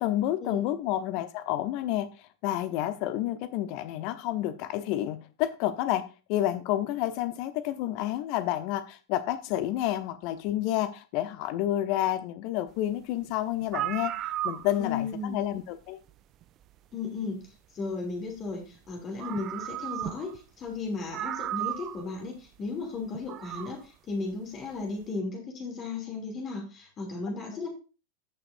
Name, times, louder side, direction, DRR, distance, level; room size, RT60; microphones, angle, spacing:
voice 1, 0.0-14.1 14.4-16.0, left 13 dB, 45° left, 12 dB, 0.8 m, -30 dB
sound 1, 13.3-13.4 13.6-15.0 16.4-16.5 18.8-18.9 19.2-20.4 20.7-20.8 21.1-22.1 23.1-23.8, right 13 dB, 35° right, 0.5 m, -34 dB
voice 2, 14.8-15.4 16.9-27.7, left 3 dB, 30° left, 2 dB, 2.6 m, -35 dB
14.5 x 6.0 x 2.6 m, 0.32 s
figure-of-eight pair, 90°, 0 cm